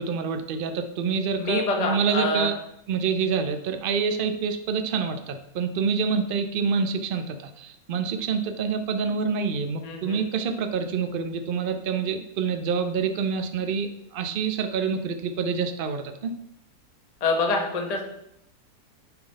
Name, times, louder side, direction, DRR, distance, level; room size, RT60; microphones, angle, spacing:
voice 1, 0.0-2.5 2.9-16.4, right 6 dB, 75° right, 8 dB, 0.5 m, -27 dB
voice 2, 1.4-2.5 9.8-10.2 17.2-18.0, left 3 dB, 30° left, 1 dB, 0.9 m, -26 dB
7.0 x 3.9 x 5.2 m, 0.80 s
omnidirectional pair, 1.7 m